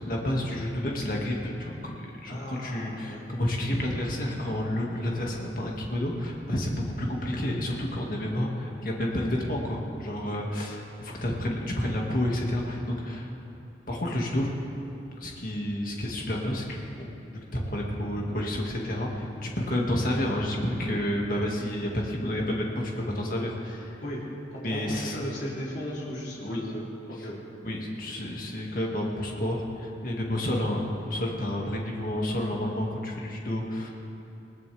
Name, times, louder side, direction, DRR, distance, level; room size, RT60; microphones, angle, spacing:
voice 1, 0.0-13.3 13.9-14.5 15.2-17.1 17.5-24.0 24.6-25.2 26.4-26.6 27.6-33.9, left 1 dB, 50° left, -1 dB, 2.1 m, -30 dB
voice 2, 2.3-3.2 24.0-24.2 24.5-27.4, equal, 90° left, -7 dB, 3.6 m, -36 dB
20.5 x 18.5 x 3.5 m, 2.8 s
head